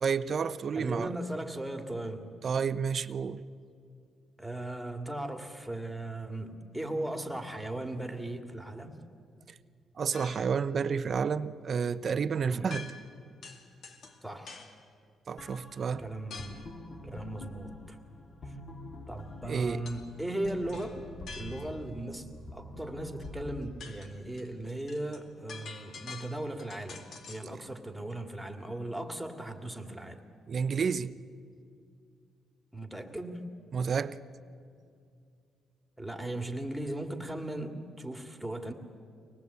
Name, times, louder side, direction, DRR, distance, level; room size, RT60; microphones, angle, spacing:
voice 1, 0.0-1.1 2.4-3.4 10.0-12.9 15.3-16.0 19.4-19.8 30.5-31.1 33.7-34.2, right 6 dB, 50° right, 0.7 m, -30 dB
voice 2, 0.7-2.2 4.4-9.0 12.4-12.7 14.2-14.6 16.0-16.6 17.0-18.0 18.5-18.6 19.1-21.0 21.3-22.3 22.5-30.2 32.7-33.5 36.0-38.7, right 1 dB, 5° right, 2.2 m, -37 dB
sound 1, 10.1-10.6 12.7-13.2 13.4-14.8 16.3-16.7 19.9-20.1 20.4-21.9 23.2-23.3 23.6-27.5, left 4 dB, 60° left, 2.5 m, -47 dB
sound 2, 15.4-23.5, left 1 dB, 40° left, 3.2 m, -46 dB
24.0 x 19.5 x 8.3 m
cardioid pair, 90°, 0 cm